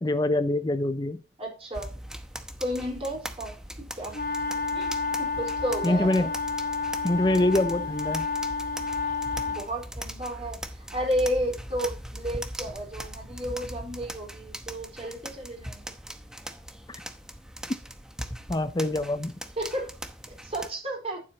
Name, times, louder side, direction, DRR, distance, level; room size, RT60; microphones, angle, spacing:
voice 1, 0.0-1.2 5.8-6.3 7.0-8.3 16.9-17.0 18.5-19.3, left 1 dB, 25° left, 11 dB, 0.6 m, -25 dB
voice 2, 1.4-1.9 2.6-4.2 4.7-6.3 9.5-15.9 19.6-19.9 20.3-21.2, equal, 35° right, 0 dB, 4.4 m, -32 dB
sound 1, 1.7-20.7, equal, 5° right, 0.9 m, -40 dB
sound 2, 4.1-9.6, left 4 dB, 55° left, 1.3 m, -30 dB
12.5 x 7.4 x 2.9 m, 0.32 s
head